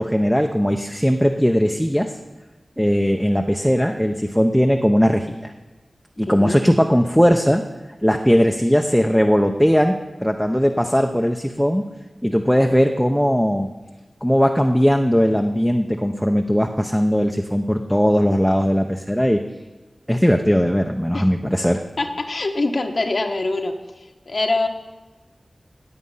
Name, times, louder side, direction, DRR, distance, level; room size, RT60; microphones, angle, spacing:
voice 1, 0.0-2.1 2.8-5.5 6.2-7.6 8.0-11.8 12.2-13.7 14.2-19.4 20.1-21.8, equal, ahead, 4 dB, 0.7 m, -18 dB
voice 2, 6.3-6.6 21.1-21.3 22.0-23.7 24.3-24.7, left 2 dB, 65° left, 4 dB, 1.1 m, -23 dB
18.0 x 7.9 x 5.6 m, 1.1 s
wide cardioid pair, 80°, 0 cm